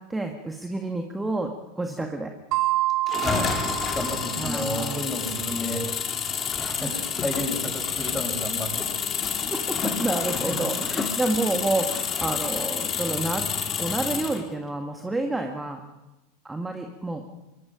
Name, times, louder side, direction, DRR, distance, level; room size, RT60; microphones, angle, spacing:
voice 1, 0.0-2.3 4.4-5.0 9.5-13.5 13.8-15.8 16.4-17.2, right 2 dB, 10° right, 4 dB, 1.8 m, -29 dB
sound 1, 2.5-5.0, right 17 dB, 45° right, 1.9 m, -28 dB
sound 2, 3.1-14.5, left 7 dB, 30° left, 2.9 m, -29 dB
voice 2, 3.9-5.9 6.6-6.9 7.2-9.0 10.5-10.6, equal, 5° left, 1 dB, 8.0 m, -31 dB
25.5 x 23.5 x 5.2 m, 1.0 s
figure-of-eight pair, 85°, 0 cm